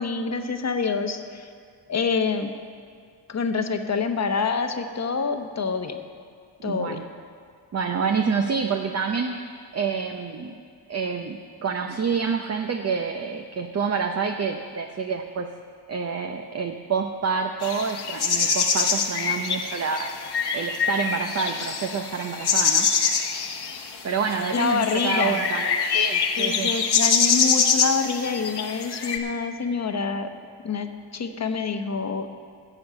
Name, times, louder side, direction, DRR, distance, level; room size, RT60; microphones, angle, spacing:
voice 1, 0.0-1.5 1.9-2.5 3.3-6.0 6.6-7.0 24.5-25.5 26.4-30.3 30.6-32.3, left 5 dB, 40° left, 7 dB, 1.0 m, -26 dB
voice 2, 6.6-7.1 7.7-10.5 10.9-15.5 15.9-20.1 20.5-22.9 24.0-26.7, right 5 dB, 35° right, 5 dB, 0.7 m, -28 dB
sound 1, 17.6-29.2, left 6 dB, 65° left, 1.2 m, -25 dB
12.0 x 7.0 x 7.7 m, 2.2 s
cardioid pair, 90°, 43 cm